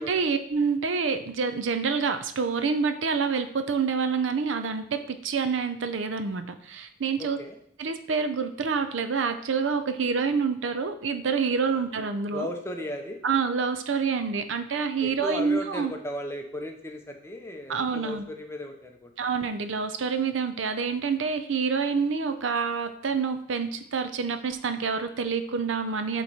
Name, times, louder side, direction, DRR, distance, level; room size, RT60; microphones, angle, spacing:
voice 1, 0.0-7.4 7.8-12.5 13.2-15.9 17.7-18.3 19.2-26.2, right 5 dB, 75° right, 10 dB, 0.5 m, -27 dB
voice 2, 7.2-7.6 11.6-11.8 12.3-13.2 15.0-19.1, equal, 15° left, 3 dB, 0.7 m, -36 dB
7.8 x 3.1 x 4.1 m, 0.69 s
head